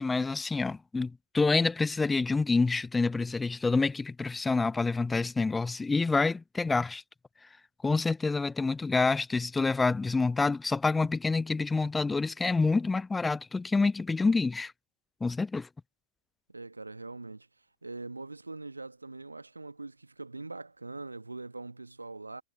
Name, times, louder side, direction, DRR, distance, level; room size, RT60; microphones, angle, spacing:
voice 1, 0.0-7.0 7.8-14.7 15.2-15.7, left 3 dB, 10° left, 0.5 m, -27 dB
voice 2, 16.5-17.5 17.8-22.4, right 3 dB, 80° right, 1.4 m, -42 dB
figure-of-eight pair, 90°, 0 cm